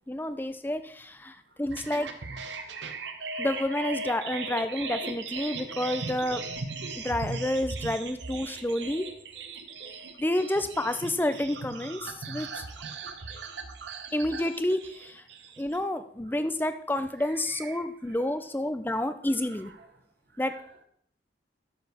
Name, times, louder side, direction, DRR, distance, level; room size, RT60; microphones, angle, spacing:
voice 1, 0.1-2.1 3.4-6.4 7.0-9.1 10.2-12.6 14.1-15.2 15.6-19.7 20.4-20.5, left 1 dB, 10° left, 10 dB, 0.5 m, -29 dB
sound 1, 1.7-15.8, right 3 dB, 85° right, 1.0 m, -38 dB
voice 2, 17.2-18.5 19.3-19.9 20.3-20.8, right 5 dB, 65° right, 7 dB, 1.1 m, -50 dB
12.5 x 6.9 x 3.5 m, 0.64 s
head